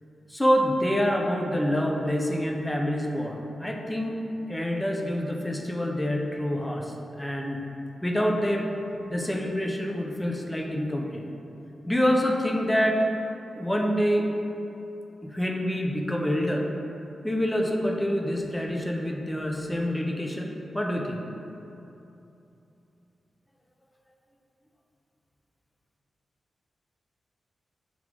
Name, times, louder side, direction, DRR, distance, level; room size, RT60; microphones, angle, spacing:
voice 1, 0.3-4.2 4.5-7.6 8.0-8.7 9.1-11.2 11.8-13.0 13.6-14.3 15.2-16.6 17.2-21.2, equal, 10° left, 1 dB, 0.5 m, -26 dB
3.6 x 3.0 x 3.6 m, 2.9 s
cardioid pair, 50°, 0 cm